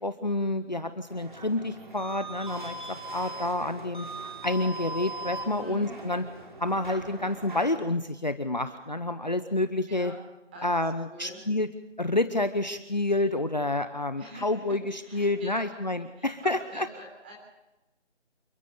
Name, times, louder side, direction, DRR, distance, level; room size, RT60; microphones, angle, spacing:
voice 1, 0.0-4.1 4.4-6.2 6.6-10.1 10.6-11.7 12.0-16.9, left 2 dB, 40° left, 11 dB, 0.9 m, -29 dB
sound 1, 1.1-7.7, right 1 dB, 40° right, 3.5 m, -40 dB
voice 2, 5.6-5.9 9.9-10.2 10.5-10.7 11.1-11.4 14.2-15.7 16.2-17.3, right 1 dB, 10° right, -1 dB, 3.6 m, -44 dB
28.5 x 13.5 x 6.7 m, 1.0 s
figure-of-eight pair, 170°, 36 cm